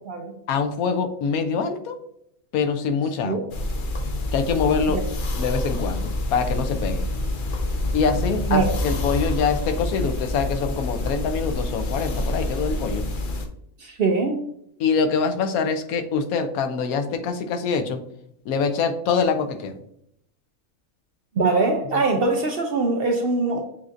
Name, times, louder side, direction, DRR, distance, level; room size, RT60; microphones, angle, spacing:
voice 1, 0.5-2.0 2.5-3.4 4.3-5.0 5.4-7.1 7.9-13.0 14.8-18.0 18.5-19.8, left 5 dB, 90° left, 8 dB, 1.1 m, -24 dB
sound 1, 3.5-13.5, left 1 dB, 55° left, 0.6 m, -27 dB
voice 2, 13.8-14.4 21.4-23.6, right 3 dB, 60° right, 3 dB, 0.6 m, -22 dB
7.2 x 2.7 x 2.5 m, 0.73 s
omnidirectional pair, 1.5 m